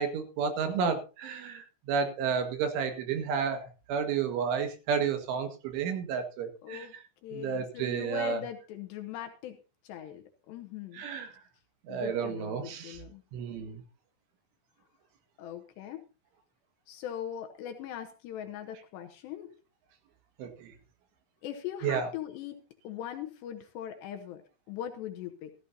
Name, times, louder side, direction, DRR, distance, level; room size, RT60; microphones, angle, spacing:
voice 1, 0.0-3.6 3.9-6.9 7.3-8.4 10.9-11.3 11.9-13.0 13.3-13.8 20.4-20.7 21.8-22.1, right 6 dB, 75° right, 7 dB, 4.0 m, -31 dB
voice 2, 6.6-7.0 7.2-9.6 9.8-11.0 11.9-13.2 15.4-16.0 16.9-19.5 21.4-22.6 22.8-25.5, left 10 dB, 75° left, 6 dB, 2.8 m, -40 dB
15.0 x 14.5 x 2.7 m, 0.32 s
omnidirectional pair, 5.8 m